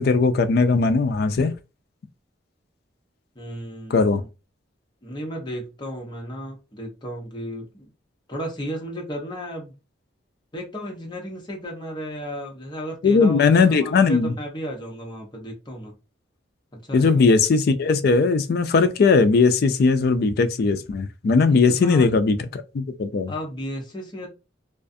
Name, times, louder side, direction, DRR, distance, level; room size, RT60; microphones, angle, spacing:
voice 1, 0.0-1.5 3.9-4.2 13.0-14.3 16.9-23.3, left 4 dB, 50° left, 0.3 m, -19 dB
voice 2, 3.4-4.3 5.0-7.9 8.3-9.7 10.5-16.0 16.8-17.2 21.5-22.1 23.3-24.3, equal, 25° left, 0.7 m, -34 dB
2.4 x 2.4 x 2.5 m
head